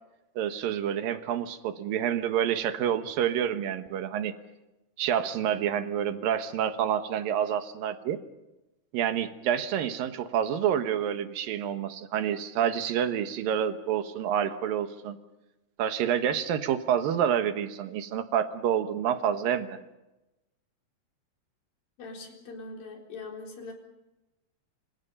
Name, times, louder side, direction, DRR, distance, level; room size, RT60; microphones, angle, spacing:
voice 1, 0.4-4.3 5.0-8.2 8.9-15.2 15.8-19.8, right 9 dB, 70° right, 9 dB, 2.8 m, -28 dB
voice 2, 22.0-23.7, left 3 dB, 60° left, 1 dB, 5.7 m, -42 dB
27.5 x 26.5 x 5.5 m, 0.99 s
omnidirectional pair, 4.6 m